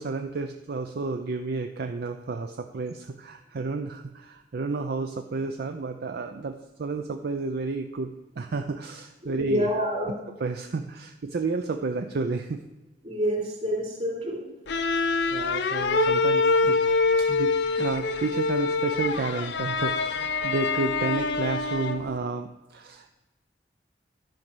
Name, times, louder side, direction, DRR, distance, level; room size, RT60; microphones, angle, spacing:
voice 1, 0.0-9.7 10.4-12.6 15.3-16.8 17.2-23.1, right 3 dB, 60° right, 6 dB, 0.5 m, -31 dB
voice 2, 9.2-10.2 13.0-14.4, equal, 35° right, -2 dB, 3.1 m, -27 dB
sound 1, 14.7-22.2, left 4 dB, 70° left, 0.6 m, -25 dB
10.5 x 5.2 x 6.0 m, 1.0 s
head